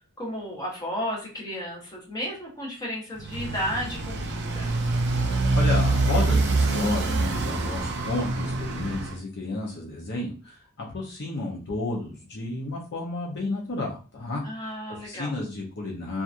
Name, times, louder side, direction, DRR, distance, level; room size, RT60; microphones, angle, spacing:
voice 1, 0.2-4.8 14.4-15.3, equal, 15° left, -3 dB, 1.0 m, -33 dB
Motorcycle, 3.2-9.2, right 2 dB, 50° right, 0.6 m, -25 dB
voice 2, 5.6-14.4 15.0-16.2, left 2 dB, 50° left, -3 dB, 0.7 m, -32 dB
2.8 x 2.5 x 2.4 m, 0.35 s
head